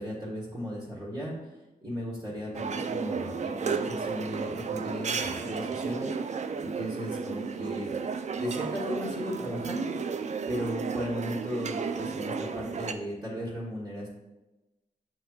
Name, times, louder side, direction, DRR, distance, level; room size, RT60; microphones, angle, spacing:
voice 1, 0.0-1.4 1.8-6.1 6.6-7.9 8.3-9.9 10.5-14.1, equal, 25° right, -7 dB, 1.4 m, -36 dB
sound 1, 2.5-12.9, right 5 dB, 50° right, 0.4 m, -33 dB
7.2 x 3.0 x 2.3 m, 1.1 s
cardioid pair, 60°, 16 cm